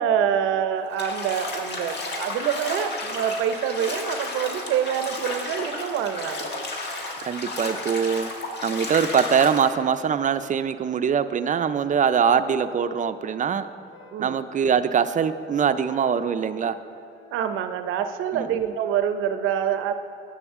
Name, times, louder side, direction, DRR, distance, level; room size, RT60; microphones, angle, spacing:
voice 1, 0.0-6.6 14.1-14.4 17.3-19.9, right 9 dB, 90° right, 9 dB, 0.6 m, -26 dB
Bathtub (filling or washing), 0.9-9.7, left 2 dB, 60° left, 1.4 m, -32 dB
voice 2, 7.2-8.3 8.6-13.7 14.2-16.8 18.3-18.7, right 7 dB, 40° right, 11 dB, 0.4 m, -23 dB
Wind instrument woodwind instrument, 12.2-14.8 15.0-17.8, left 3 dB, 80° left, 1.2 m, -49 dB
12.0 x 8.7 x 3.6 m, 2.4 s
cardioid pair, 90°, 20 cm